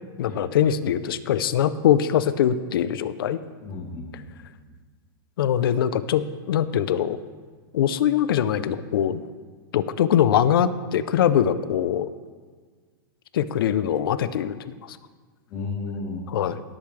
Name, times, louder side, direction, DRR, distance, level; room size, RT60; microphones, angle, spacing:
voice 1, 0.2-3.4 5.4-7.2 7.7-9.2 9.7-12.1 13.3-14.6 14.9-15.0 16.3-16.6, left 9 dB, 80° left, 14 dB, 0.6 m, -22 dB
voice 2, 3.6-4.5 15.5-16.5, left 3 dB, 35° left, -9 dB, 2.9 m, -34 dB
18.5 x 7.0 x 3.3 m, 1.5 s
supercardioid pair, 160°, 12 cm